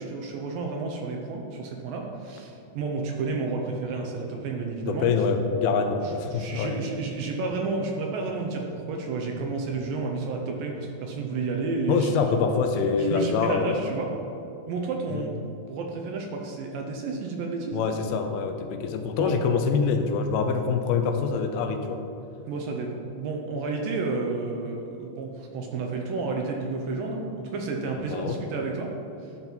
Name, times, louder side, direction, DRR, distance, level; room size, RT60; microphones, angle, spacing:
voice 1, 0.0-5.1 6.0-12.1 12.9-14.1 14.7-15.3 15.7-17.8 19.2-19.4 22.5-28.9 29.2-29.3, right 3 dB, 75° right, 1 dB, 2.3 m, -31 dB
voice 2, 4.9-6.8 11.9-13.8 15.1-15.2 17.7-22.0 28.1-28.4, left 5 dB, 85° left, 6 dB, 2.5 m, -25 dB
12.0 x 4.5 x 5.3 m, 2.7 s
omnidirectional pair, 4.4 m